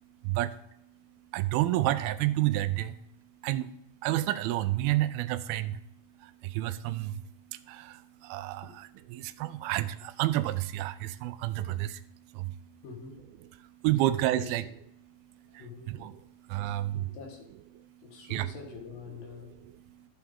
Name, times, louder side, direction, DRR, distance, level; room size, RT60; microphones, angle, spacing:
voice 1, 0.2-0.6 1.3-3.0 3.4-3.7 4.0-5.8 6.2-12.8 13.6-14.6 15.0-15.2 15.5-17.1 17.9-18.5 19.4-20.1, right 15 dB, 85° right, 13 dB, 2.4 m, -31 dB
voice 2, 12.8-13.2 14.3-14.5 15.5-16.0 16.6-16.7 17.1-17.5 18.0-19.5, left 5 dB, 70° left, 1 dB, 2.8 m, -45 dB
12.5 x 6.7 x 3.6 m, 0.77 s
omnidirectional pair, 4.3 m